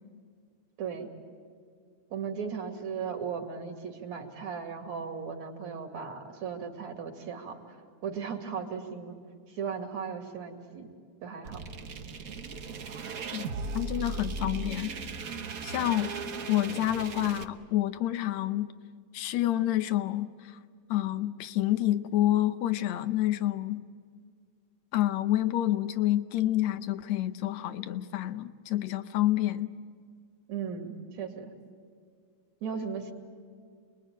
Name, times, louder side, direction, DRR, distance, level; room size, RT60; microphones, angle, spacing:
voice 1, 0.8-1.1 2.1-7.8 8.0-9.2 9.5-10.9 11.2-11.7 15.8-15.9 30.5-31.5 32.6-33.1, right 6 dB, 65° right, 3.6 m, -37 dB
sound 1, 11.4-17.4, right 4 dB, 85° right, 0.7 m, -37 dB
voice 2, 13.7-14.9 15.6-16.1 16.5-18.7 19.1-20.6 20.9-23.8 24.9-29.7, left 14 dB, 70° left, 2.1 m, -28 dB
28.5 x 22.0 x 9.1 m
omnidirectional pair, 3.4 m